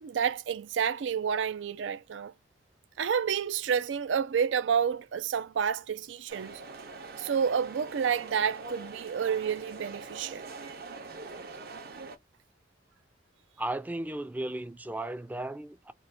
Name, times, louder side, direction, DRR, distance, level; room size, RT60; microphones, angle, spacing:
voice 1, 0.0-2.3 3.0-6.6 7.2-10.5, right 7 dB, 85° right, 0.4 m, -29 dB
Ben Shewmaker - Omiya Train Station, 6.3-12.2, right 3 dB, 55° right, 1.0 m, -43 dB
voice 2, 13.6-15.9, right 1 dB, 10° right, 0.3 m, -35 dB
2.8 x 2.4 x 4.1 m
head